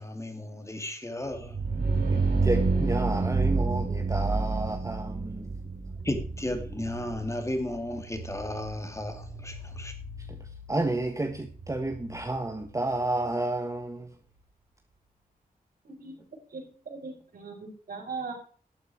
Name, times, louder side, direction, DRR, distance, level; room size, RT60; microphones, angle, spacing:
voice 1, 0.0-1.6 5.4-5.5 6.0-9.9, left 1 dB, 20° left, 2.6 m, -34 dB
sound 1, 1.3-12.9, right 3 dB, 85° right, 4.8 m, -30 dB
voice 2, 2.1-5.5 10.2-14.1, right 2 dB, 20° right, 1.4 m, -31 dB
voice 3, 15.8-16.2 16.5-17.5 17.9-18.3, right 4 dB, 70° right, 4.6 m, -39 dB
12.0 x 8.2 x 4.8 m
wide cardioid pair, 90°, 16 cm